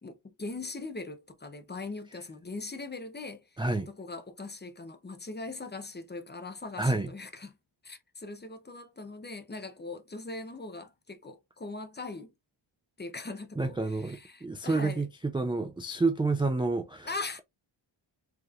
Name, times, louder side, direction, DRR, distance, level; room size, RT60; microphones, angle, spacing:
voice 1, 0.0-3.6 3.9-7.6 7.8-12.3 13.0-15.1 17.0-17.4, left 3 dB, 20° left, 0.7 m, -40 dB
voice 2, 3.6-3.9 6.8-7.1 13.6-17.1, right 3 dB, 10° right, 0.3 m, -29 dB
4.8 x 3.1 x 2.4 m
wide cardioid pair, 140°, 47 cm